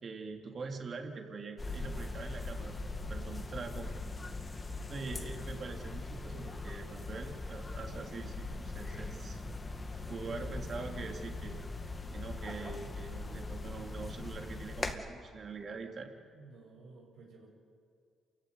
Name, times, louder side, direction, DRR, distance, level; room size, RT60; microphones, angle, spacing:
voice 1, 0.0-3.9 4.9-9.4 10.1-11.6 12.1-16.1, right 4 dB, 45° right, 3 dB, 3.4 m, -44 dB
sound 1, 1.6-14.9, left 3 dB, 25° left, 2.2 m, -41 dB
voice 2, 10.2-10.6 16.3-17.5, right 3 dB, 80° right, -1 dB, 7.0 m, -52 dB
27.5 x 15.5 x 9.7 m, 2.2 s
cardioid pair, 90°, 0 cm